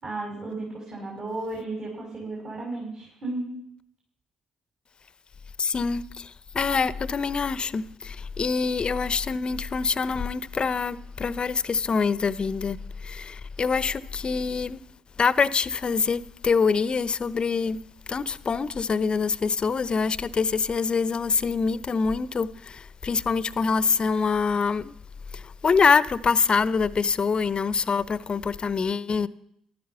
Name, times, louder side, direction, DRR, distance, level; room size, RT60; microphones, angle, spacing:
voice 1, 0.0-3.6, right 2 dB, 50° right, 6.4 m, -34 dB
voice 2, 5.6-14.8 15.2-17.8 18.1-24.9 25.3-29.3, left 5 dB, 40° left, 0.8 m, -25 dB
14.5 x 12.5 x 5.6 m
hypercardioid pair, 50°, 2 cm